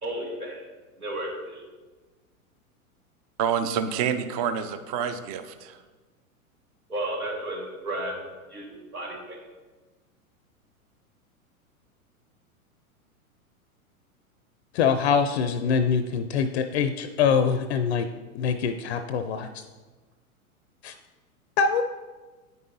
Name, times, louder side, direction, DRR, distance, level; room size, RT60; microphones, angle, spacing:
voice 1, 0.0-0.6 1.0-1.6 6.9-8.1 8.5-9.4, right 1 dB, 90° right, -2 dB, 2.0 m, -33 dB
voice 2, 3.4-5.8, right 7 dB, 30° right, 10 dB, 0.3 m, -28 dB
voice 3, 14.7-18.1 18.3-19.5 20.8-20.9 21.6-21.8, left 6 dB, 50° left, 9 dB, 0.4 m, -24 dB
9.4 x 5.4 x 2.7 m, 1.3 s
hypercardioid pair, 105°, 43 cm